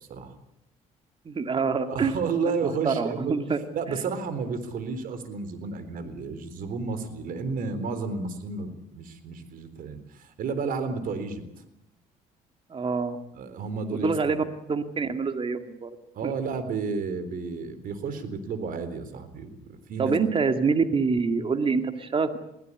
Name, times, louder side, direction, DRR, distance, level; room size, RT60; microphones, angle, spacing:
voice 1, 1.3-2.1 2.6-3.6 3.9-4.0 12.7-13.2 13.9-16.0 16.2-16.3 20.0-22.4, right 5 dB, 35° right, 8 dB, 2.2 m, -26 dB
voice 2, 1.9-3.4 3.7-11.4 13.3-14.4 16.1-20.2, right 4 dB, 65° right, 12 dB, 4.0 m, -32 dB
22.0 x 16.0 x 9.8 m, 0.85 s
supercardioid pair, 75°, 16 cm